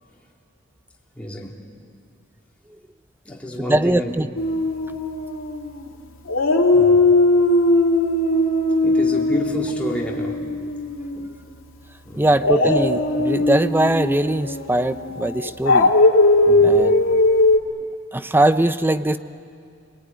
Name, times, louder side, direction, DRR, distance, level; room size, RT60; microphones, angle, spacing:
voice 1, 1.1-1.5 3.2-4.1 6.7-7.1 8.8-10.4 12.0-12.7 16.4-16.8, equal, 5° left, -2 dB, 3.0 m, -30 dB
voice 2, 3.6-4.3 11.2-11.3 12.1-15.9 16.6-17.2 18.1-19.2, right 1 dB, 10° right, 12 dB, 0.6 m, -21 dB
Dog, 4.4-5.9 6.3-11.4 12.4-17.6, left 2 dB, 85° left, 2.5 m, -19 dB
27.0 x 23.0 x 9.6 m, 2.3 s
head